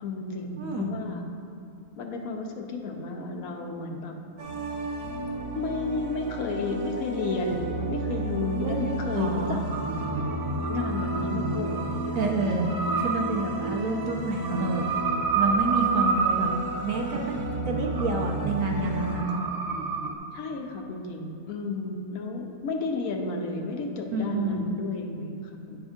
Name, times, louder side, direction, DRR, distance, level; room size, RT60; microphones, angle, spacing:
voice 1, 0.0-1.2 2.0-4.1 5.5-9.6 10.7-12.6 20.3-25.8, left 3 dB, 70° left, 2 dB, 1.1 m, -32 dB
voice 2, 0.6-1.0 8.6-8.8 9.1-9.6 12.1-14.9 15.3-16.5 16.8-19.4 24.1-24.7, right 2 dB, 65° right, 0 dB, 1.1 m, -29 dB
sound 1, 4.4-19.2, right 1 dB, 45° right, 0.9 m, -33 dB
sound 2, 9.7-20.2, right 5 dB, 80° right, 0.3 m, -30 dB
9.9 x 3.5 x 5.0 m, 2.6 s
omnidirectional pair, 1.6 m